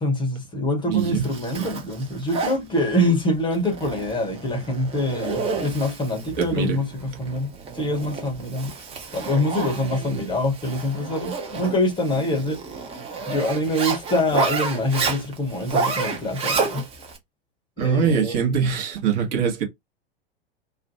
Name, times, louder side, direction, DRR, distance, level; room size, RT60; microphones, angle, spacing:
voice 1, 0.0-7.5 7.7-8.7 9.1-12.6 13.3-16.9 17.8-18.4, left 1 dB, 15° left, 0.8 m, -25 dB
voice 2, 0.8-1.3 1.6-1.7 6.4-6.8 17.8-19.6, right 6 dB, 45° right, 1.0 m, -23 dB
Zipper (clothing), 1.0-17.2, right 4 dB, 20° right, 0.7 m, -30 dB
2.5 x 2.2 x 2.7 m
figure-of-eight pair, 90°, 31 cm